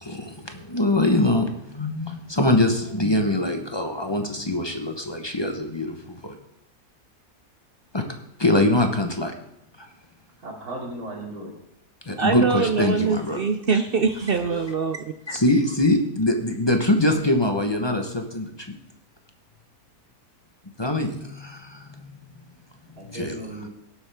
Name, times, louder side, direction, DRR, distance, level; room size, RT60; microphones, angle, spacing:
voice 1, 0.0-6.4 7.9-8.0 8.4-9.3 9.8-9.9 12.1-13.4 14.4-14.6 15.3-18.7 20.8-22.1 23.1-23.4, left 1 dB, 20° left, 4 dB, 0.8 m, -23 dB
voice 2, 10.4-11.5 23.0-23.7, right 1 dB, 80° right, -2 dB, 3.2 m, -36 dB
voice 3, 12.2-15.1, right 5 dB, 65° right, 7 dB, 0.5 m, -23 dB
17.5 x 8.0 x 3.5 m, 0.83 s
omnidirectional pair, 1.6 m